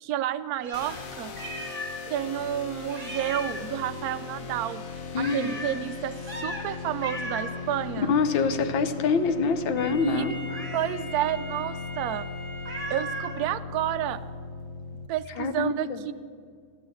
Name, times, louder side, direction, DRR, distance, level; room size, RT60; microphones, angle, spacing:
voice 1, 0.0-1.4 2.1-4.8 5.2-8.1 10.0-10.3 10.7-12.3 12.9-14.2 15.1-16.1, right 12 dB, 75° right, 10 dB, 0.8 m, -30 dB
Meow, 0.6-2.1 2.4-2.5 2.9-3.7 5.2-5.8 6.2-6.7 7.0-7.6 10.5-11.0 12.6-13.4, equal, 25° right, 2.3 m, -37 dB
sound 1, 0.7-15.1, left 4 dB, 55° left, 1.2 m, -38 dB
voice 2, 5.1-5.6 8.0-10.3 15.4-16.0, left 5 dB, 80° left, 10 dB, 1.7 m, -25 dB
Wind instrument woodwind instrument, 9.8-13.7, left 1 dB, 25° left, 5.3 m, -42 dB
13.0 x 12.0 x 8.6 m, 2.2 s
omnidirectional pair, 2.1 m